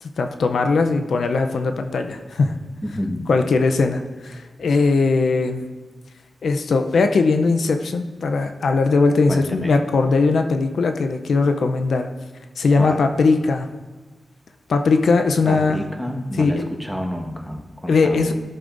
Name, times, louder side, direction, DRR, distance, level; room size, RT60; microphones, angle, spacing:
voice 1, 0.0-2.6 3.3-5.6 6.4-12.1 12.6-13.7 14.7-15.8 16.4-16.6 17.9-18.3, left 4 dB, 80° left, 7 dB, 0.5 m, -19 dB
voice 2, 2.8-3.4 9.3-9.8 12.8-13.1 15.4-18.3, equal, 5° left, 3 dB, 1.3 m, -29 dB
14.5 x 6.8 x 2.6 m, 1.3 s
cardioid pair, 60°, 0 cm